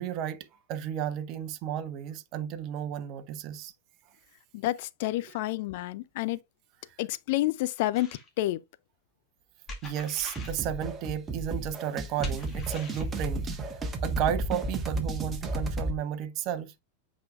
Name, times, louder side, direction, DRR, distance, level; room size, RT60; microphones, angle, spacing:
voice 1, 0.0-3.7 9.8-13.7 14.0-16.7, right 10 dB, 40° right, 0.9 m, -33 dB
voice 2, 4.5-6.4 7.0-8.1 8.4-8.6, left 16 dB, 50° left, 0.5 m, -29 dB
sound 1, 8.0-8.3 9.7-10.6 12.2-13.1, left 2 dB, 25° left, 2.3 m, -41 dB
sound 2, 10.4-16.0, right 2 dB, 20° right, 1.4 m, -33 dB
8.0 x 5.0 x 2.4 m
figure-of-eight pair, 90°, 0 cm